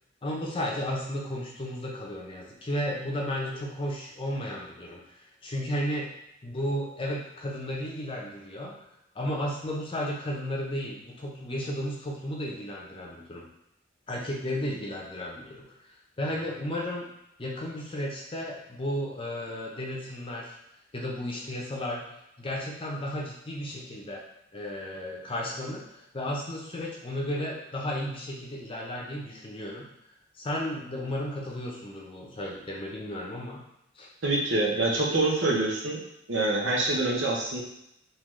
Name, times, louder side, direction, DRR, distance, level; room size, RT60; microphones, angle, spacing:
voice 1, 0.2-5.0 5.4-6.1 6.4-8.7 9.1-13.5 14.1-15.7 16.2-17.1 17.4-20.6 20.9-22.1 22.4-24.2 24.5-29.9 30.4-33.6 34.0-34.1, equal, 30° left, -2 dB, 0.7 m, -33 dB
voice 2, 34.2-36.0 36.3-37.6, right 2 dB, 85° right, -2 dB, 0.9 m, -26 dB
3.8 x 3.0 x 3.1 m, 0.80 s
head